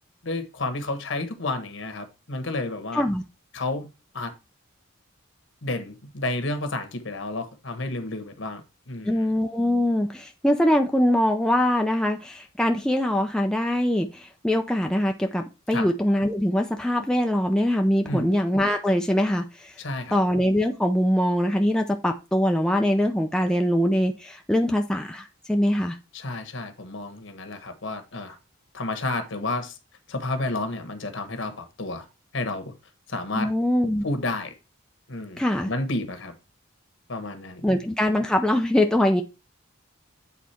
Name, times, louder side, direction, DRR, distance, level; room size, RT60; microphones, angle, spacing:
voice 1, 0.2-3.0 3.5-3.9 4.1-4.3 5.6-8.6 8.9-9.3 15.7-15.9 18.0-18.3 19.8-20.2 26.1-28.4 28.7-29.8 30.1-32.0 32.3-32.7 33.1-33.5 34.0-34.5 35.1-36.3 37.1-37.8, left 2 dB, 65° left, 1.3 m, -31 dB
voice 2, 2.9-3.2 9.0-19.8 20.1-26.0 33.3-34.0 35.4-35.7 37.6-39.2, left 1 dB, 5° left, 0.5 m, -23 dB
8.4 x 4.1 x 4.3 m
head